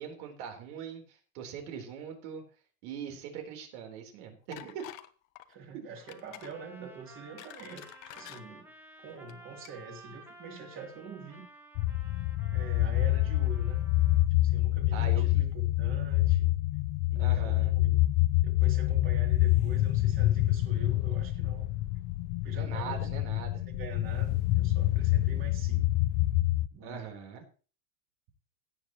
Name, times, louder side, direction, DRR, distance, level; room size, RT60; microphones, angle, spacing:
voice 1, 0.0-2.4 2.8-4.9 5.7-5.9 14.9-15.4 17.2-17.7 22.5-23.6 25.3-25.4 26.8-27.4, right 7 dB, 65° right, 4 dB, 3.9 m, -41 dB
sound 1, 4.5-5.1 5.4-5.6 6.1-6.6 7.1-8.4 9.2-9.3 9.6-9.7, left 14 dB, 85° left, 1.3 m, -48 dB
voice 2, 5.5-8.7 9.0-11.5 12.5-13.8 14.4-16.5 17.1-18.0 18.4-21.7 22.4-23.1 23.8-25.9 26.7-27.1, right 3 dB, 30° right, 2 dB, 3.1 m, -44 dB
Trumpet, 6.0-14.3, right 2 dB, 5° right, 1.6 m, -54 dB
sound 2, 11.8-26.7, left 16 dB, 40° left, 0.5 m, -27 dB
16.5 x 9.2 x 3.1 m, 0.37 s
cardioid pair, 165°, 39 cm